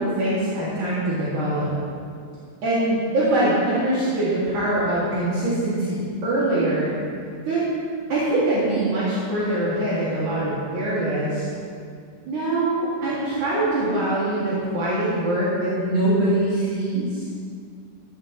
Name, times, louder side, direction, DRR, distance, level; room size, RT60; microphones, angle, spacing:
voice 1, 0.0-1.7 2.6-6.9 7.5-7.7 8.1-11.5 12.3-17.2, right 1 dB, 80° right, -10 dB, 3.9 m, -23 dB
14.5 x 14.0 x 3.2 m, 2.3 s
omnidirectional pair, 3.5 m